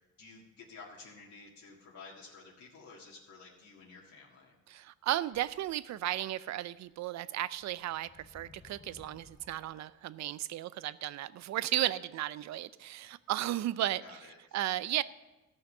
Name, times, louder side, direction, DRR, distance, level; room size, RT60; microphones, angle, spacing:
voice 1, 0.2-4.5 14.0-14.6, left 4 dB, 70° left, -4 dB, 1.8 m, -52 dB
voice 2, 4.7-14.2 14.5-15.0, right 13 dB, 65° right, 17 dB, 0.5 m, -34 dB
sound 1, 5.3-6.3 6.9-7.0 7.5-10.0, left 3 dB, 20° left, 0.7 m, -59 dB
14.0 x 5.8 x 6.5 m, 1.1 s
cardioid pair, 90°, 30 cm